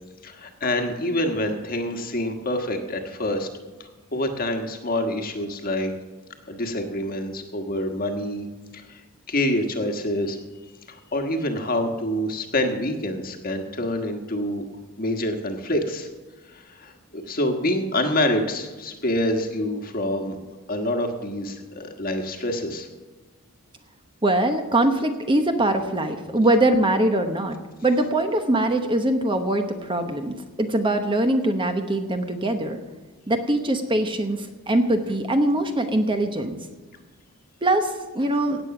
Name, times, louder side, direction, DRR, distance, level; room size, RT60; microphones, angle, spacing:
voice 1, 0.2-3.5 4.1-5.9 6.5-8.5 8.7-9.0 9.3-10.4 10.9-14.6 15.0-16.1 16.5-20.4 20.7-22.9, left 1 dB, 40° left, 5 dB, 1.4 m, -26 dB
voice 2, 24.2-32.8 33.3-36.6 37.6-38.6, right 1 dB, 20° right, 6 dB, 0.9 m, -22 dB
17.0 x 8.3 x 5.9 m, 1.3 s
head